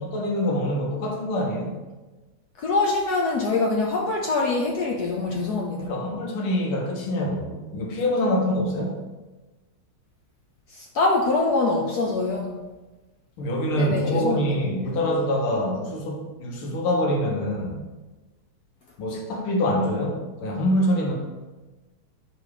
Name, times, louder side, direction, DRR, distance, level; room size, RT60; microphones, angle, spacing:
voice 1, 0.0-1.7 5.8-8.9 13.4-17.9 19.0-21.1, equal, 90° left, -1 dB, 1.9 m, -25 dB
voice 2, 2.6-5.9 10.7-12.6 13.8-14.5, left 3 dB, 70° left, 0 dB, 0.9 m, -24 dB
4.9 x 4.1 x 4.8 m, 1.2 s
omnidirectional pair, 2.3 m